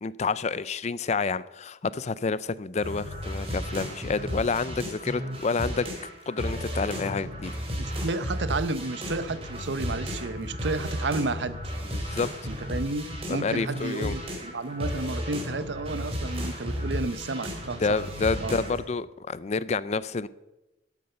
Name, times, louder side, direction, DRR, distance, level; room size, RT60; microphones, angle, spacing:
voice 1, 0.0-5.9 6.3-7.5 11.9-12.3 13.3-14.2 17.8-20.3, left 4 dB, 40° left, 18 dB, 0.5 m, -29 dB
sound 1, 2.8-18.8, equal, 35° right, 3.1 m, -34 dB
voice 2, 7.8-11.6 12.5-18.0 18.4-18.6, right 3 dB, 80° right, 14 dB, 0.7 m, -32 dB
12.5 x 8.3 x 6.6 m, 1.0 s
head